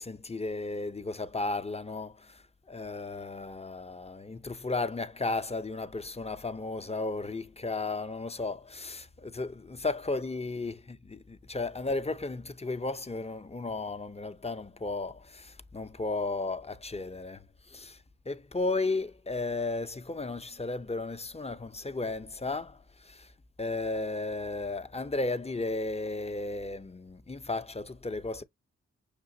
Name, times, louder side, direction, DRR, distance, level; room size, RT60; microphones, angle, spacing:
voice 1, 0.0-23.3 23.6-28.4, left 3 dB, 20° left, 0.6 m, -34 dB
6.6 x 2.5 x 2.7 m
supercardioid pair, 45°, 30 cm